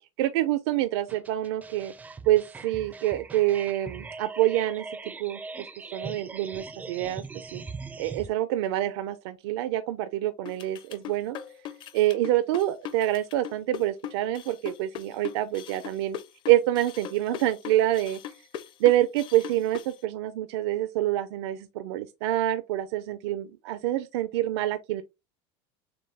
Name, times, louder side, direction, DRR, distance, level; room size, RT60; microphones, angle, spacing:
voice 1, 0.2-1.9 2.3-4.9 5.2-5.4 5.9-7.2 7.5-7.6 8.0-11.4 11.9-16.2 16.5-18.2 18.8-25.0, right 14 dB, 85° right, 0.5 m, -26 dB
sound 1, 1.1-8.3, right 4 dB, 10° right, 0.4 m, -41 dB
sound 2, 10.4-19.9, left 11 dB, 35° left, 0.6 m, -39 dB
6.7 x 2.3 x 3.3 m
cardioid pair, 155°, 14 cm